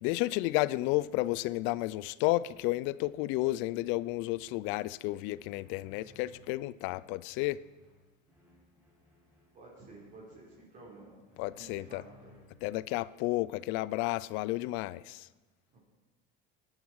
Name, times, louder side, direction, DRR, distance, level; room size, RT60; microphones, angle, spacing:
voice 1, 0.0-7.6 11.4-12.0 12.6-15.3, left 18 dB, 65° left, 0.5 m, -32 dB
sound 1, 0.7-12.8, left 1 dB, 5° right, 5.7 m, -63 dB
voice 2, 9.5-11.2 11.5-12.4 15.7-15.8, right 2 dB, 35° right, 5.1 m, -52 dB
19.5 x 11.5 x 4.8 m
cardioid pair, 145°, 21 cm